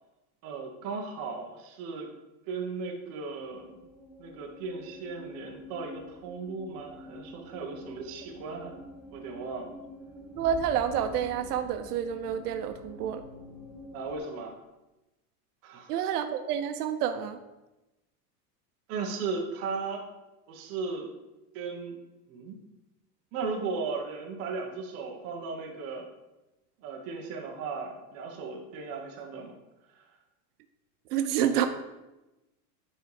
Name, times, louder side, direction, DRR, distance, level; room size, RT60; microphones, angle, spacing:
voice 1, 0.4-2.1 2.5-3.8 4.2-8.8 9.1-9.7 13.9-14.6 15.6-15.9 18.9-20.0 20.5-21.1 21.5-22.0 22.3-22.6 23.3-26.1 26.8-29.5 29.9-30.0, right 4 dB, 30° right, 1 dB, 1.2 m, -36 dB
sound 1, 2.9-14.2, left 1 dB, 5° right, 1.5 m, -47 dB
voice 2, 10.4-13.2 15.9-17.4 31.1-31.7, right 9 dB, 85° right, 8 dB, 0.8 m, -28 dB
10.0 x 4.0 x 4.9 m, 1.0 s
supercardioid pair, 175°, 45 cm